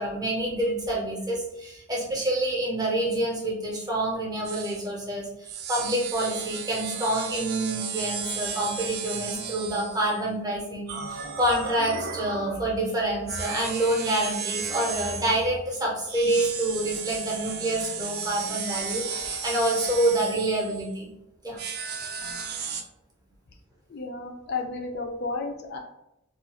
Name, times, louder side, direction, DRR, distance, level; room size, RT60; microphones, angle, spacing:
voice 1, 0.0-21.1 21.4-21.6, right 1 dB, 20° right, -3 dB, 0.7 m, -27 dB
sound 1, 4.4-4.9 5.5-10.2 10.9-12.7 13.3-15.5 16.1-21.0 21.6-22.8, right 6 dB, 55° right, 0.3 m, -34 dB
voice 2, 23.9-25.8, left 3 dB, 50° left, 2 dB, 0.4 m, -32 dB
2.4 x 2.2 x 2.8 m, 0.84 s
head